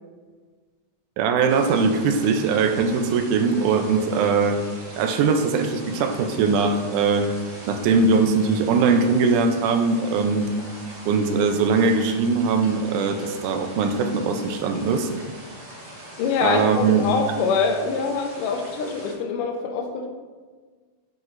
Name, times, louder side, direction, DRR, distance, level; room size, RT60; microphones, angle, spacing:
voice 1, 1.2-4.6 5.0-7.3 7.7-10.4 11.1-15.1 16.4-17.1, right 4 dB, 80° right, 5 dB, 2.0 m, -21 dB
sound 1, 1.5-19.1, right 1 dB, 50° right, 2.3 m, -42 dB
voice 2, 16.2-20.1, left 5 dB, 85° left, 3 dB, 2.1 m, -24 dB
9.3 x 5.1 x 2.5 m, 1.4 s
omnidirectional pair, 3.6 m